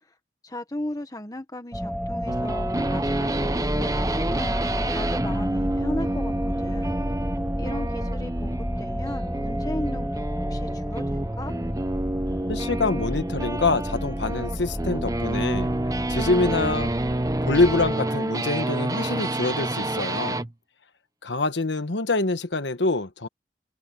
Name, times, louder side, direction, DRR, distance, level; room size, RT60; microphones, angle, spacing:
voice 1, 0.4-7.0 7.6-11.5, left 1 dB, 20° left, 1.5 m, -36 dB
sound 1, 1.7-17.9, equal, ahead, 2.0 m, -30 dB
sound 2, 2.3-20.5, right 1 dB, 20° right, 0.8 m, -29 dB
voice 2, 12.5-15.7 16.1-16.9 17.4-20.5 21.2-23.3, left 3 dB, 75° left, 1.3 m, -25 dB
head